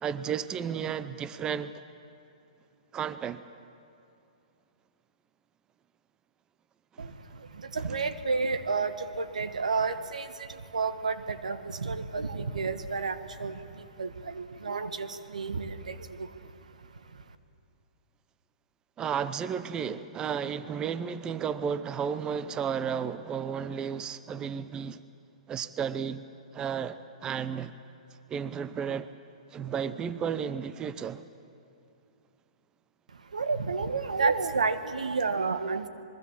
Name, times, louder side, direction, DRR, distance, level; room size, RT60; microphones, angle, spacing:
voice 1, 0.0-1.7 2.9-3.4 7.0-7.1 19.0-25.0 25.5-26.2 26.5-27.7 28.3-29.1 29.5-31.2, right 7 dB, 20° right, 14 dB, 0.7 m, -33 dB
voice 2, 7.7-10.3 10.7-13.5 14.0-14.1 14.4-15.1 15.3-15.7 33.3-35.9, right 4 dB, 85° right, 10 dB, 1.4 m, -30 dB
26.0 x 21.0 x 7.3 m, 2.6 s
hypercardioid pair, 130°, 4 cm